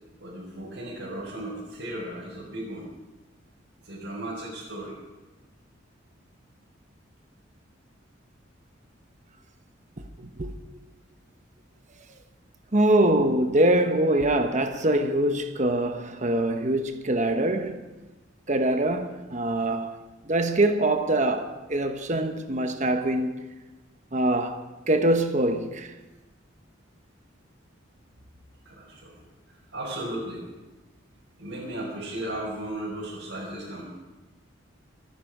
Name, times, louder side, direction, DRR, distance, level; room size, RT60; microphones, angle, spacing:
voice 1, 0.2-2.9 3.8-4.9 28.6-29.1 29.5-30.4 31.4-33.8, right 1 dB, 70° right, 4.9 m, -35 dB
voice 2, 12.7-17.8 18.5-20.0 20.3-23.5 24.1-24.6 24.9-25.9, right 1 dB, 40° right, 1.1 m, -24 dB
25.5 x 10.0 x 5.0 m
head